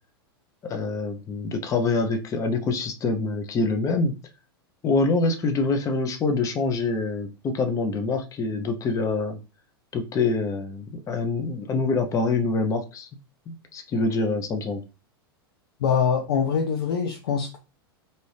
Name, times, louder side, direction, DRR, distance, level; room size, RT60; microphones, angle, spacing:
voice 1, 0.7-4.1 4.8-9.4 9.9-13.1 13.5-14.8, left 3 dB, 25° left, 0.6 m, -25 dB
voice 2, 15.8-17.6, left 6 dB, 70° left, 0.6 m, -24 dB
2.7 x 2.5 x 3.3 m
hypercardioid pair, 100°, 13 cm